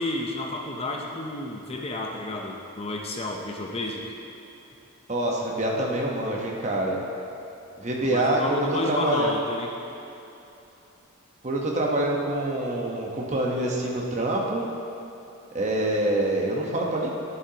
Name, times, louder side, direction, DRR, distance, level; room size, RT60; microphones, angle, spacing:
voice 1, 0.0-4.1 8.0-9.7, left 2 dB, 25° left, 1 dB, 0.7 m, -31 dB
voice 2, 5.1-7.0 7.8-9.4 11.4-14.6 15.5-17.1, right 1 dB, 35° right, -2 dB, 1.1 m, -26 dB
11.0 x 10.5 x 2.9 m, 2.9 s
head